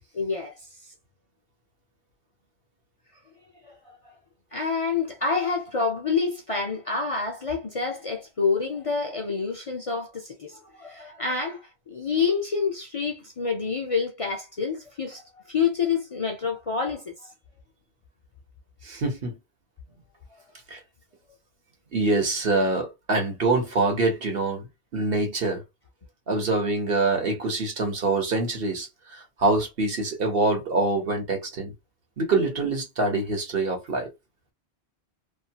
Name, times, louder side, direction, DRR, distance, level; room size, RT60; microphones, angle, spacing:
voice 1, 0.1-0.6 3.6-3.7 4.5-17.3, left 5 dB, 40° left, 0.5 m, -28 dB
voice 2, 18.8-19.3 20.7-20.8 21.9-24.6 24.9-25.6 26.3-31.7 32.2-34.1, right 2 dB, 60° right, 1.2 m, -25 dB
2.6 x 2.2 x 2.7 m
omnidirectional pair, 1.1 m